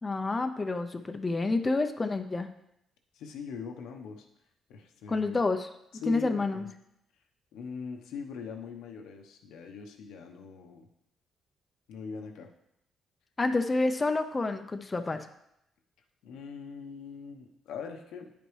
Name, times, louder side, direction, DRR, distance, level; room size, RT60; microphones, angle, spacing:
voice 1, 0.0-2.5 5.1-5.7 6.1-6.6 13.4-15.3, left 3 dB, 25° left, 7 dB, 0.5 m, -28 dB
voice 2, 3.1-4.3 4.7-5.4 6.0-6.7 7.5-10.9 11.9-12.5 16.2-18.3, left 5 dB, 90° left, 3 dB, 0.9 m, -42 dB
9.8 x 5.2 x 3.2 m, 0.79 s
cardioid pair, 90°, 0 cm